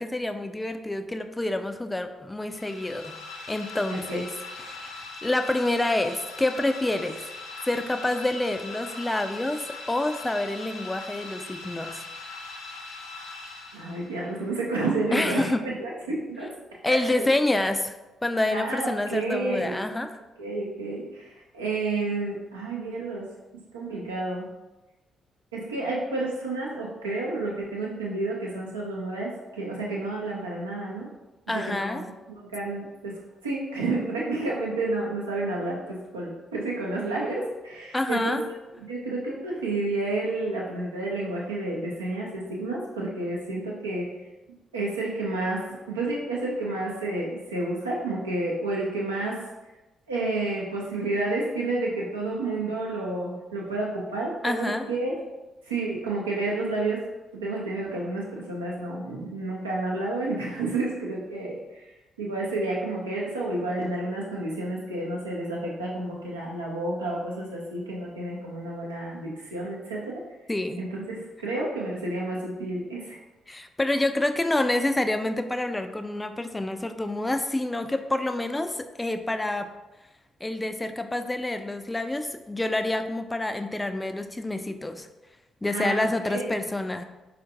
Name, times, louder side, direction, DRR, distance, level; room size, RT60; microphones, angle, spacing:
voice 1, 0.0-3.1 3.5-4.3 4.6-7.2 7.7-12.0 15.1-15.6 16.8-17.9 18.2-20.1 31.5-32.0 37.9-38.4 54.4-54.8 70.5-70.9 73.5-79.7 80.4-85.1 85.6-87.0, left 2 dB, 15° left, 8 dB, 0.3 m, -27 dB
sound 1, 2.4-14.3, left 3 dB, 70° left, 0.5 m, -41 dB
voice 2, 3.9-4.2 13.7-16.5 16.8-17.2 18.5-19.7 20.4-24.5 25.5-31.1 31.5-44.1 44.7-49.4 50.1-55.1 55.6-57.0 57.3-61.9 62.2-70.2 70.8-73.2 85.7-86.5, right 2 dB, 85° right, -4 dB, 0.6 m, -30 dB
4.2 x 2.4 x 2.6 m, 1.1 s
figure-of-eight pair, 40°, 0 cm